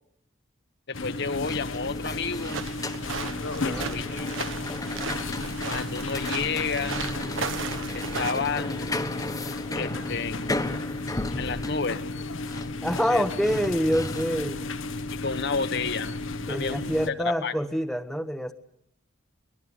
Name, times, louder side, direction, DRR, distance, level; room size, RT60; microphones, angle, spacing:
sound 1, 0.9-17.1, left 2 dB, 90° left, 1.3 m, -34 dB
voice 1, 0.9-2.6 3.6-4.4 5.6-7.1 7.9-9.1 9.7-10.9 11.4-12.0 13.1-13.2 15.1-16.2 16.5-17.5, left 5 dB, 55° left, 9 dB, 1.2 m, -31 dB
sound 2, 1.4-14.5, left 2 dB, 20° left, 1.3 m, -36 dB
sound 3, 2.4-8.3, right 4 dB, 90° right, 1.5 m, -35 dB
voice 2, 12.8-14.6 16.5-18.5, equal, ahead, 7 dB, 1.0 m, -26 dB
23.0 x 20.5 x 9.6 m, 0.78 s
head